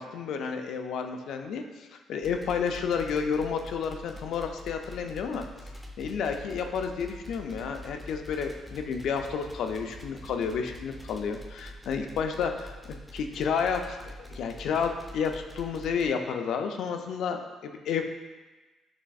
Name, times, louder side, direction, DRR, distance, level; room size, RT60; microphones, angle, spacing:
voice 1, 0.0-5.4 6.0-12.7 13.1-14.0 14.3-18.0, left 6 dB, 75° left, 5 dB, 0.4 m, -31 dB
sound 1, 2.2-16.1, left 1 dB, 5° left, 0.6 m, -45 dB
6.0 x 3.2 x 2.3 m, 1.2 s
cardioid pair, 90°, 0 cm